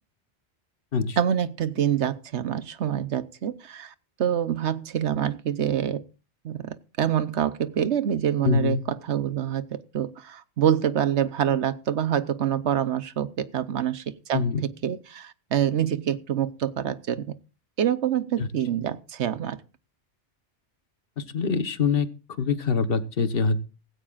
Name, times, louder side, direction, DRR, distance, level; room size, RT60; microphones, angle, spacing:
voice 1, 1.2-3.9 4.2-6.0 6.4-17.3 17.8-19.6, right 9 dB, 75° right, 1.2 m, -26 dB
voice 2, 8.4-8.8 14.3-14.6 18.4-18.5 21.2-22.1 22.4-23.6, left 5 dB, 55° left, 1.3 m, -24 dB
17.0 x 16.0 x 2.5 m
omnidirectional pair, 1.2 m